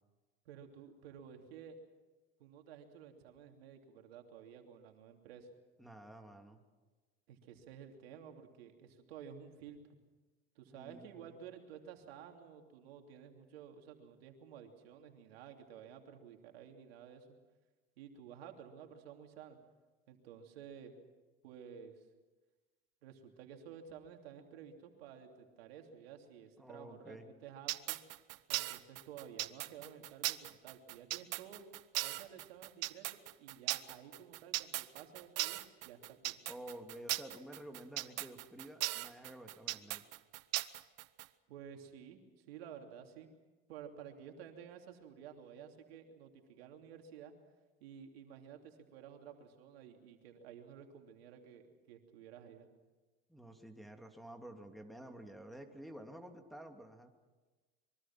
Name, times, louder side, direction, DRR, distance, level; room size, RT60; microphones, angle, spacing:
voice 1, 0.4-1.8 2.4-5.5 7.3-9.8 10.5-17.3 18.0-19.6 20.1-20.9 21.4-22.0 23.0-28.0 28.5-31.7 32.0-36.4 41.5-43.3 43.7-47.3 47.8-52.7, right 8 dB, 85° right, 3 dB, 3.1 m, -53 dB
voice 2, 5.8-6.6 10.7-11.3 26.6-27.3 36.5-40.0 53.3-57.1, right 1 dB, ahead, 3 dB, 2.9 m, -51 dB
sound 1, 27.7-41.3, right 17 dB, 55° right, 1.0 m, -38 dB
25.0 x 23.5 x 6.1 m, 1.2 s
supercardioid pair, 90°, 29 cm